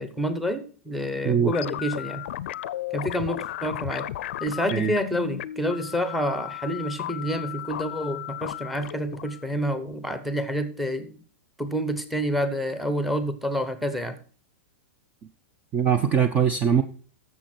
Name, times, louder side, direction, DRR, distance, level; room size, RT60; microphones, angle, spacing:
voice 1, 0.0-2.2 2.9-4.1 4.4-11.2 11.6-14.2, equal, ahead, 10 dB, 0.9 m, -28 dB
sound 1, 1.5-10.4, left 13 dB, 65° left, 0.5 m, -35 dB
voice 2, 15.7-16.8, right 8 dB, 20° right, 10 dB, 0.5 m, -21 dB
14.0 x 6.7 x 4.4 m, 0.41 s
supercardioid pair, 160°, 7 cm